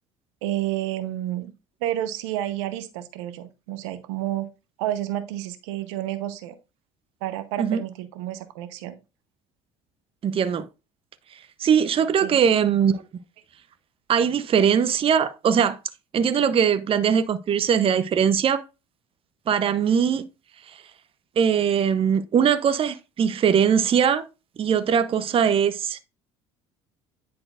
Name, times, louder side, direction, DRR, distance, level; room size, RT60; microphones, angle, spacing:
voice 1, 0.4-1.5 1.8-4.5 4.8-6.5 7.2-9.0 12.2-12.4, right 13 dB, 85° right, 0.8 m, -30 dB
voice 2, 10.2-10.6 11.6-13.0 14.1-15.8 16.1-18.6 19.5-20.2 21.4-24.3 24.6-26.0, right 7 dB, 40° right, 0.7 m, -21 dB
9.7 x 4.3 x 2.4 m
supercardioid pair, 75°, 15 cm